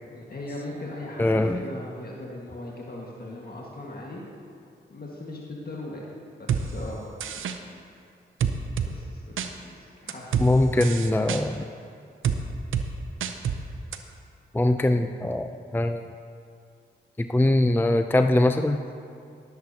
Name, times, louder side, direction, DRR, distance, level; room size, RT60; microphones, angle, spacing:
voice 1, 0.0-4.2 4.9-6.0 6.4-7.0 7.3-7.5 8.8-9.4 9.8-10.6, left 1 dB, 50° left, -3 dB, 1.7 m, -39 dB
voice 2, 1.2-1.6 10.4-11.6 14.5-16.0 17.2-18.8, left 1 dB, 10° left, 7 dB, 0.5 m, -22 dB
sound 1, 6.5-6.6 7.2-7.6 8.4-8.9 9.4-9.5 10.1-10.5 10.8-11.4 12.2-12.4 12.7-12.9 13.2-13.6 13.9-14.0, right 8 dB, 80° right, 0.6 m, -26 dB
21.5 x 7.7 x 2.9 m, 2.4 s
cardioid pair, 50°, 20 cm